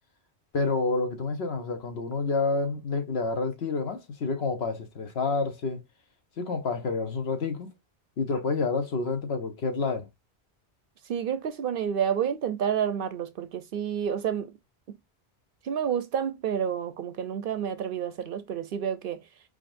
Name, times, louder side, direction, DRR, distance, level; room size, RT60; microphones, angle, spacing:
voice 1, 0.5-5.8 6.4-7.7 8.2-10.1, left 4 dB, 70° left, 1.2 m, -28 dB
voice 2, 11.1-14.5 15.6-19.2, right 8 dB, 60° right, 0.7 m, -29 dB
4.8 x 3.8 x 2.5 m
omnidirectional pair, 1.1 m